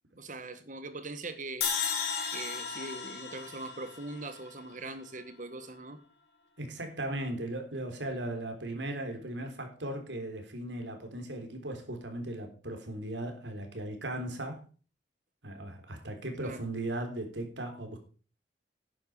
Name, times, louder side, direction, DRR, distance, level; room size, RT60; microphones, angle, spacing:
voice 1, 0.2-1.7 2.0-2.1 2.3-6.0 16.4-16.6, right 2 dB, 45° right, 1.7 m, -41 dB
sound 1, 1.6-4.8, left 6 dB, 65° left, 3.4 m, -35 dB
voice 2, 6.6-14.6 15.4-18.0, right 1 dB, 90° right, 3.5 m, -37 dB
11.5 x 9.5 x 5.0 m
head